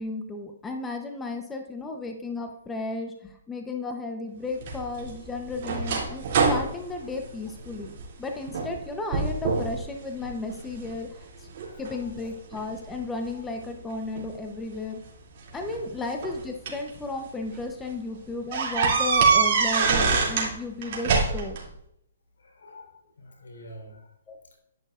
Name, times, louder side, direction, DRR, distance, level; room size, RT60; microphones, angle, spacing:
voice 1, 0.0-7.9 8.2-11.5 11.8-15.0 15.5-21.6 24.3-24.4, left 2 dB, 10° left, 3 dB, 0.9 m, -34 dB
sound 1, 4.6-8.0 8.5-8.8 9.1-9.8 10.2-10.9 11.5-13.0 14.1-14.3 15.5-16.9 17.4-17.6 17.9-18.0 18.5-20.5 20.8-21.6, right 5 dB, 45° right, 2.9 m, -25 dB
voice 2, 11.6-12.1 22.4-24.1, equal, 90° left, 2 dB, 4.0 m, -47 dB
11.5 x 10.5 x 2.5 m, 0.76 s
hypercardioid pair, 155°, 0 cm